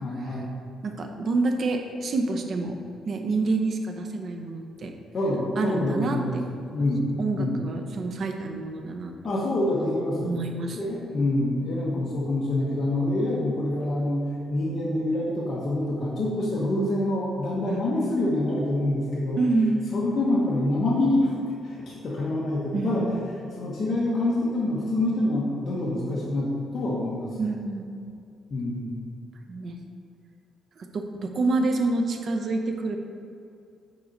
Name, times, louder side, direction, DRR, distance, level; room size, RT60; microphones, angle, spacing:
voice 1, 0.0-0.5 5.1-6.4 6.7-7.1 7.3-7.6 9.2-10.3 10.7-19.4 19.9-21.3 21.6-23.0 23.6-27.3 28.5-29.0, left 1 dB, 40° left, -6 dB, 1.2 m, -26 dB
voice 2, 0.8-2.8 3.0-4.9 5.6-6.2 7.2-9.1 10.2-10.8 17.7-17.8 19.4-19.8 22.7-23.2 27.4-27.9 29.5-29.8 30.8-33.0, right 3 dB, 45° right, 4 dB, 0.7 m, -27 dB
7.1 x 4.8 x 4.0 m, 2.5 s
cardioid pair, 140°, 0 cm